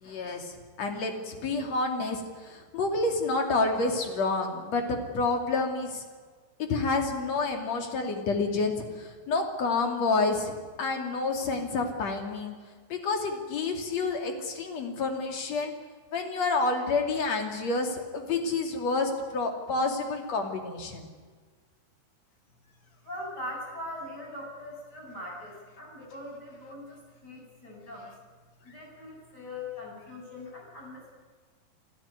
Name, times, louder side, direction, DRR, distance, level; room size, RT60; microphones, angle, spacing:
voice 1, 0.0-6.0 6.6-12.6 12.9-15.7 16.1-21.1, left 3 dB, 40° left, 3 dB, 3.2 m, -29 dB
voice 2, 23.0-27.0 27.2-28.1 28.6-31.1, left 1 dB, 20° left, -1 dB, 8.1 m, -41 dB
27.0 x 14.0 x 9.6 m, 1.5 s
omnidirectional pair, 5.4 m